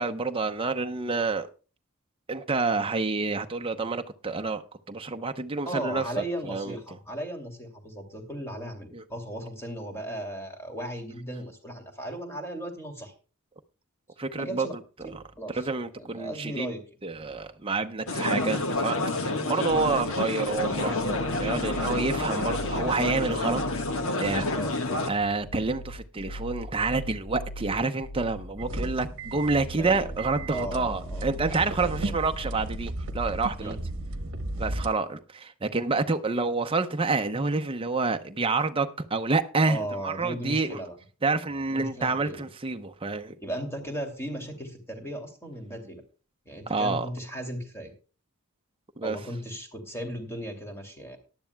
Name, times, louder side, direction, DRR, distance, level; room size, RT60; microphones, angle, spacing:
voice 1, 0.0-1.5 2.3-4.6 4.9-6.8 8.9-9.0 14.2-14.7 15.1-15.2 15.5-16.7 17.0-23.6 24.2-24.5 25.1-33.8 34.6-40.8 41.2-43.3 46.7-47.1 49.0-49.2, right 3 dB, 25° right, 0.7 m, -28 dB
voice 2, 5.7-13.1 14.3-14.7 15.4-15.6 16.0-16.8 24.5-24.8 29.8-30.2 30.5-31.3 31.8-32.1 33.6-33.8 39.7-41.0 41.7-42.5 43.4-46.0 46.4-47.9 49.0-51.2, right 1 dB, 10° left, 2.6 m, -36 dB
sound 1, 18.1-25.1, left 2 dB, 60° left, 1.4 m, -29 dB
sound 2, 19.7-34.7, equal, 80° left, 1.0 m, -41 dB
sound 3, 28.6-34.9, right 2 dB, 60° right, 1.0 m, -35 dB
18.0 x 11.5 x 2.3 m
head